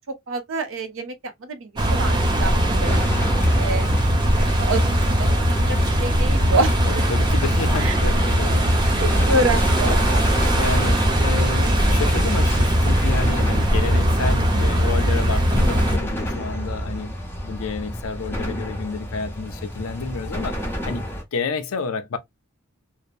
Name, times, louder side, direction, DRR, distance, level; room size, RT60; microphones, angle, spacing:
voice 1, 0.3-1.1 1.4-3.0 3.5-3.8 4.3-5.6 6.0-6.8 7.8-8.0 8.9-10.1 16.5-16.7, right 2 dB, 65° right, 0.6 m, -27 dB
sound 1, 1.8-16.0, equal, 20° right, 0.5 m, -20 dB
sound 2, 2.8-21.2, equal, 10° left, 0.9 m, -29 dB
voice 2, 6.8-9.0 10.5-20.6 20.8-21.0 21.3-22.2, left 4 dB, 75° left, 0.5 m, -30 dB
2.8 x 2.0 x 2.4 m
head